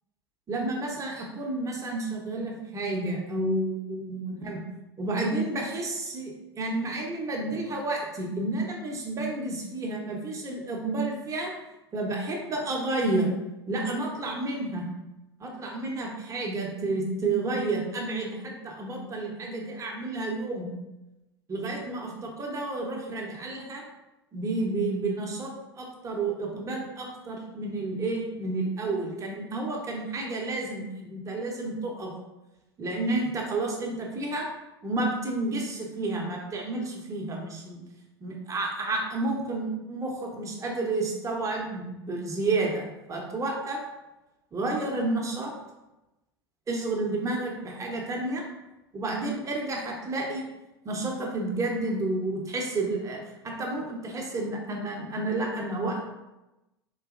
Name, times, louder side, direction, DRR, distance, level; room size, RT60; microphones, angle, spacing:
voice 1, 0.5-4.6 5.0-11.5 11.9-13.3 13.7-14.9 15.4-20.7 21.5-23.8 24.3-32.1 32.8-34.5 34.8-37.8 38.2-43.8 44.5-45.5 46.7-48.4 48.9-50.5 50.8-56.0, right 2 dB, 25° right, 0 dB, 0.8 m, -30 dB
3.9 x 2.7 x 2.4 m, 0.98 s
figure-of-eight pair, 85°, 14 cm